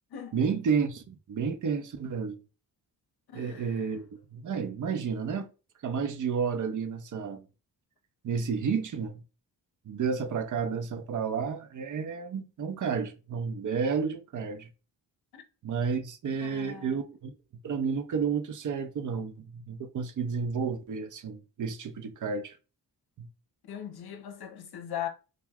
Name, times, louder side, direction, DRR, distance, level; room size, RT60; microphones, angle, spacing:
voice 1, 0.3-2.4 3.3-5.5 5.8-7.5 8.2-9.2 9.9-14.7 15.6-17.4 17.6-22.6 23.2-23.3, right 6 dB, 45° right, 0.6 m, -31 dB
voice 2, 3.3-3.9 15.3-15.4 16.4-17.0 23.6-25.1, left 10 dB, 55° left, 0.7 m, -39 dB
2.3 x 2.2 x 3.4 m
hypercardioid pair, 40°, 46 cm